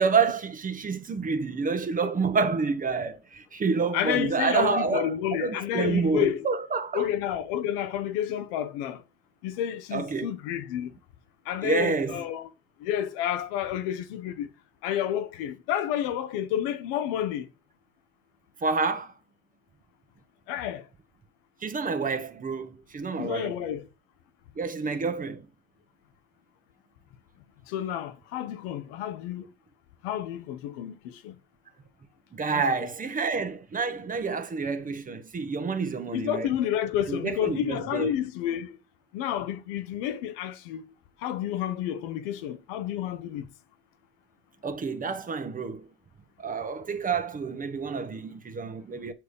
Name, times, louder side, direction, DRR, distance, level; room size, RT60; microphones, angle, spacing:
voice 1, 0.0-7.1 9.9-10.3 11.6-12.2 18.6-19.1 21.6-23.6 24.6-25.4 32.3-36.5 37.1-38.1 44.6-45.9 46.4-49.1, right 4 dB, 25° right, 1.4 m, -28 dB
voice 2, 3.9-6.5 6.9-9.0 9.4-10.9 11.5-12.5 12.8-14.5 14.8-17.5 20.5-20.8 23.2-23.9 27.7-29.5 30.0-31.4 32.5-32.6 36.1-38.8 39.1-40.8 41.2-43.5, left 10 dB, 65° left, 1.1 m, -30 dB
8.1 x 4.6 x 5.2 m
hypercardioid pair, 70°, 30 cm